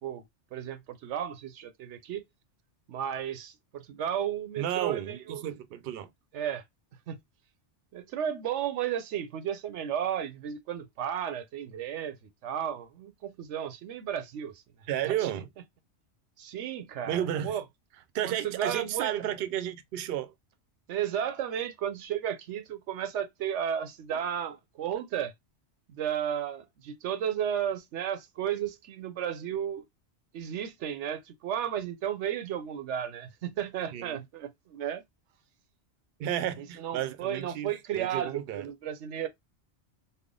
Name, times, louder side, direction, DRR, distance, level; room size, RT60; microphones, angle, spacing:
voice 1, 0.5-2.2 2.9-5.5 6.3-6.6 7.1-7.2 7.9-12.2 12.4-14.6 15.0-15.3 16.4-17.6 18.2-19.1 20.9-25.3 25.9-29.8 30.3-35.0 36.6-39.3, right 9 dB, 85° right, 0.9 m, -33 dB
voice 2, 4.6-6.1 14.9-15.5 17.0-17.6 18.1-20.3 24.1-24.2 33.9-34.2 36.2-38.7, right 11 dB, 65° right, 0.7 m, -32 dB
3.4 x 2.1 x 3.7 m
omnidirectional pair, 1.2 m